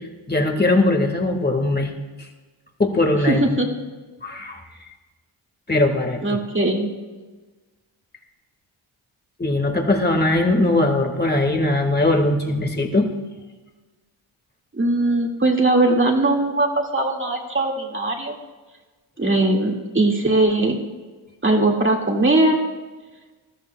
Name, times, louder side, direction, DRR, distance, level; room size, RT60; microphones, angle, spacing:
voice 1, 0.3-1.9 2.8-3.6 4.2-4.6 5.7-6.4 9.4-13.1, left 2 dB, 20° left, 3 dB, 1.8 m, -20 dB
voice 2, 3.3-3.7 6.2-6.9 14.7-18.3 19.2-20.9 21.4-22.6, right 2 dB, 25° right, 1 dB, 2.1 m, -20 dB
20.0 x 14.0 x 2.3 m, 1.3 s
cardioid pair, 85°, 49 cm